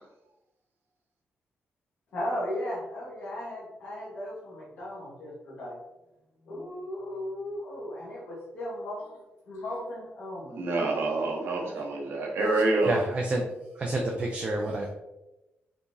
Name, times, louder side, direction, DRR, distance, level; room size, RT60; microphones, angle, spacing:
voice 1, 2.1-5.7 6.4-9.2 9.5-11.0 11.5-11.8, left 1 dB, 65° left, -8 dB, 1.0 m, -36 dB
voice 2, 10.5-13.0, right 2 dB, 65° right, -1 dB, 0.8 m, -27 dB
voice 3, 12.8-13.4 13.8-14.9, right 2 dB, 25° right, -1 dB, 0.4 m, -29 dB
3.5 x 2.9 x 2.6 m, 0.96 s
wide cardioid pair, 180°, 4 cm